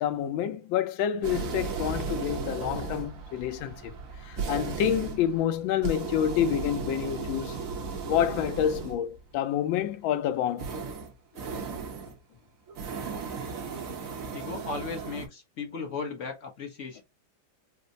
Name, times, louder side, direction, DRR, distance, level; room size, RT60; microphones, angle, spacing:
voice 1, 0.0-3.9 4.2-7.6 8.1-10.7, left 10 dB, 85° left, 1.4 m, -28 dB
sound 1, 1.2-9.2 10.6-12.2 12.7-15.3, right 5 dB, 60° right, 1.0 m, -35 dB
voice 2, 14.3-17.0, left 4 dB, 55° left, 0.9 m, -36 dB
4.4 x 2.0 x 2.5 m
omnidirectional pair, 2.1 m